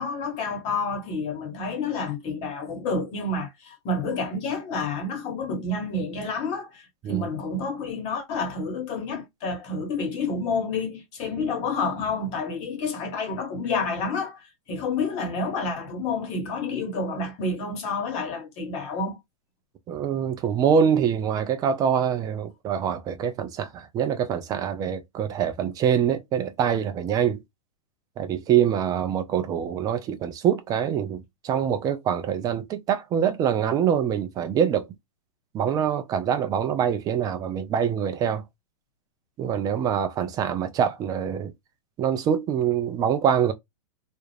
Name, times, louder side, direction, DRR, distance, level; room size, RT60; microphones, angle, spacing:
voice 1, 0.0-19.2, left 3 dB, 35° left, 1.2 m, -29 dB
voice 2, 19.9-27.4 28.2-34.9 35.5-38.4 39.4-41.5 42.0-43.5, right 8 dB, 20° right, 0.4 m, -24 dB
2.4 x 2.0 x 3.1 m
hypercardioid pair, 130°, 19 cm